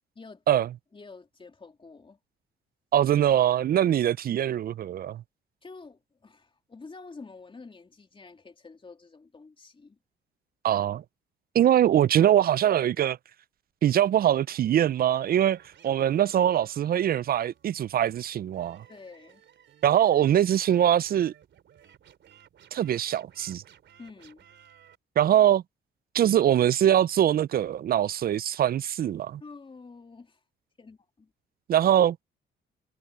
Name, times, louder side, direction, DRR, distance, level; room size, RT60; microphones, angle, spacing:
voice 1, 0.9-2.2 4.0-4.1 5.6-10.0 18.9-19.4 24.0-24.5 29.4-30.4 30.8-31.3, left 4 dB, 25° left, 3.0 m, -48 dB
voice 2, 2.9-5.2 10.6-11.0 11.5-13.2 13.8-15.6 15.8-18.8 19.8-21.3 22.7-23.6 25.2-25.6 26.1-29.4 31.7-32.2, right 11 dB, 50° right, 0.4 m, -23 dB
sound 1, 15.3-25.0, right 9 dB, 65° right, 3.7 m, -57 dB
cardioid pair, 90°, 20 cm